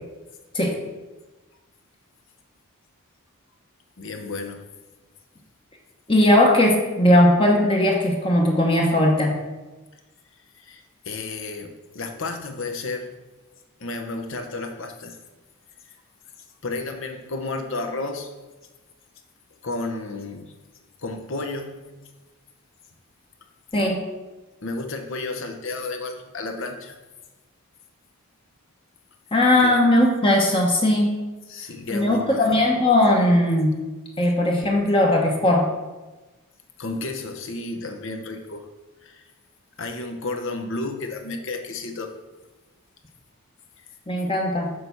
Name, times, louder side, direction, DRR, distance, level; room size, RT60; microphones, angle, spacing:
voice 1, 4.0-4.6 10.5-13.1 13.8-15.2 16.6-18.3 19.6-20.5 21.0-22.0 24.6-27.0 29.6-29.8 31.5-32.6 36.8-38.7 39.0-39.3 39.8-42.1, left 3 dB, 60° left, 4 dB, 1.0 m, -32 dB
voice 2, 6.1-9.4 23.7-24.0 29.3-31.1 31.9-33.8 34.2-35.7 44.1-44.7, left 1 dB, 25° left, 0 dB, 1.0 m, -18 dB
6.7 x 4.7 x 6.9 m, 1.2 s
head